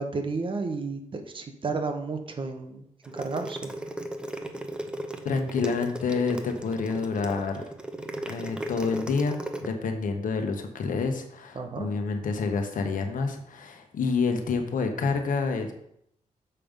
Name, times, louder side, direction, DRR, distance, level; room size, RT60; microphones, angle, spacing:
voice 1, 0.0-2.8 3.1-3.7 11.6-11.9, right 4 dB, 40° right, 6 dB, 0.9 m, -32 dB
sound 1, 3.0-9.7, right 1 dB, 5° right, 0.6 m, -36 dB
voice 2, 5.2-7.7 8.3-15.7, left 4 dB, 80° left, 5 dB, 1.0 m, -28 dB
6.8 x 5.4 x 5.2 m, 0.74 s
wide cardioid pair, 155°, 14 cm